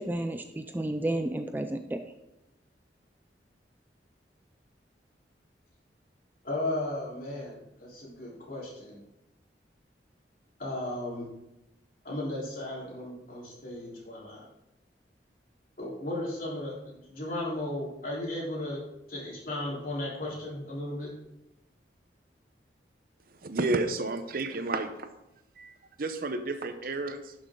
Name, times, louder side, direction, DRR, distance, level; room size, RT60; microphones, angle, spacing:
voice 1, 0.0-2.0, right 1 dB, 10° right, 7 dB, 0.4 m, -31 dB
voice 2, 6.4-9.0 10.6-11.3 12.0-14.5 15.8-18.8 19.1-21.1, left 1 dB, 55° left, -6 dB, 3.8 m, -35 dB
voice 3, 23.4-25.1 25.6-27.3, right 2 dB, 55° right, 9 dB, 0.8 m, -31 dB
11.5 x 6.4 x 3.8 m, 0.89 s
head